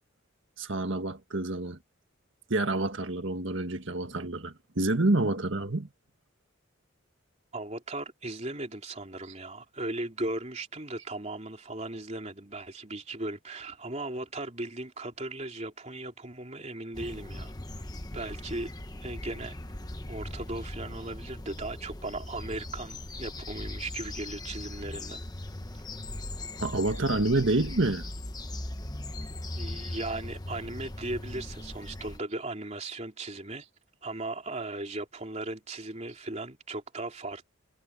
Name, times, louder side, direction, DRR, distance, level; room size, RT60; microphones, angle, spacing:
voice 1, 0.6-1.8 2.5-5.9 26.6-28.1, right 2 dB, 65° right, 1.8 m, -28 dB
voice 2, 7.5-17.8 18.1-18.7 19.0-19.6 20.1-25.2 29.5-33.6 34.0-37.4, right 2 dB, 30° right, 3.4 m, -37 dB
sound 1, 16.9-32.2, left 1 dB, 20° left, 1.1 m, -39 dB
head